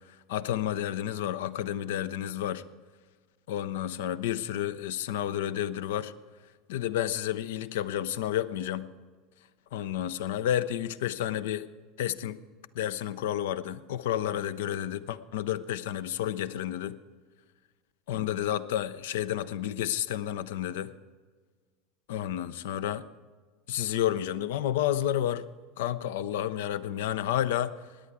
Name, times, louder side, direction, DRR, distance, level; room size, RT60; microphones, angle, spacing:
voice 1, 0.1-2.6 3.5-6.1 6.7-8.9 9.7-11.7 12.0-12.4 12.7-17.0 18.1-20.9 22.1-23.0 23.7-25.4 25.8-27.7, left 11 dB, 65° left, 16 dB, 0.5 m, -30 dB
17.5 x 10.0 x 4.7 m, 1.5 s
figure-of-eight pair, 75°, 0 cm